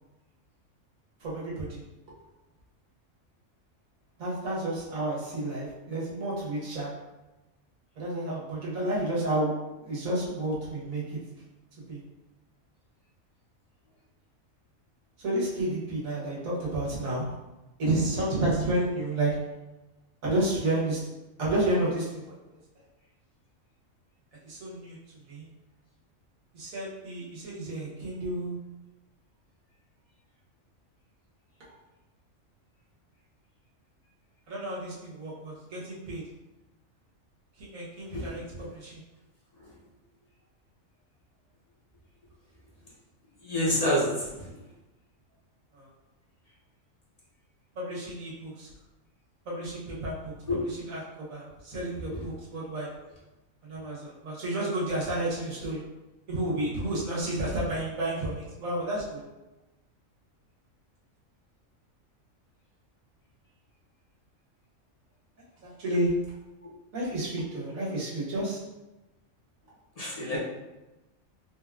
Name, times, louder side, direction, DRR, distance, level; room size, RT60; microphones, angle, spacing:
voice 1, 1.2-1.8 4.2-6.9 8.0-9.5 9.8-11.2 11.9-12.0 15.2-17.3 17.8-19.3 20.2-21.0 21.4-22.2 24.4-25.0 25.2-25.5 26.5-28.6 34.5-36.2 37.6-39.0 45.7-45.9 47.7-48.7 49.4-50.3 50.9-52.9 53.6-55.8 56.3-59.2 65.6-66.1 66.9-68.6, right 1 dB, 80° right, -6 dB, 1.6 m, -31 dB
voice 2, 43.4-44.5 50.5-50.6 70.0-70.4, equal, 30° left, -7 dB, 0.9 m, -28 dB
3.9 x 2.4 x 3.5 m, 1.0 s
omnidirectional pair, 1.4 m